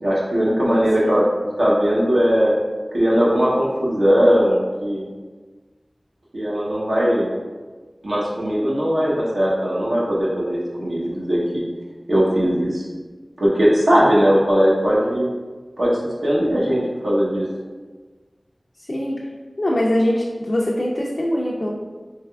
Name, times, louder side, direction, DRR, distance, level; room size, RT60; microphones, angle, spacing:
voice 1, 0.0-2.6 2.9-5.1 6.3-7.3 8.0-11.6 12.1-12.9 13.4-15.3 15.8-17.4, equal, 85° right, -6 dB, 0.7 m, -19 dB
voice 2, 0.7-1.2 18.9-19.2 19.6-21.7, left 1 dB, 60° left, -4 dB, 0.4 m, -22 dB
3.3 x 3.2 x 2.2 m, 1.4 s
wide cardioid pair, 55°, 0 cm